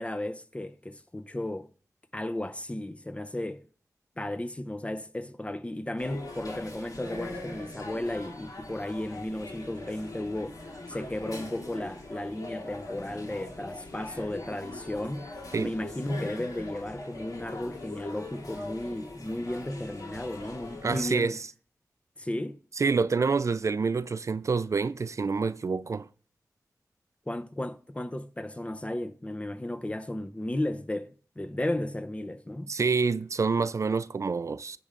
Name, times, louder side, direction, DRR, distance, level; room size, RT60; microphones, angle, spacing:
voice 1, 0.0-1.7 2.1-3.6 4.2-10.6 10.9-15.3 15.6-21.4 22.2-22.6 27.3-32.7, left 1 dB, 20° left, 0.6 m, -34 dB
sound 1, 6.0-21.1, left 2 dB, 75° left, 2.6 m, -41 dB
voice 2, 20.8-21.4 22.8-26.1 32.7-34.8, right 4 dB, 55° right, 0.4 m, -27 dB
10.0 x 3.7 x 6.6 m
wide cardioid pair, 65°, 6 cm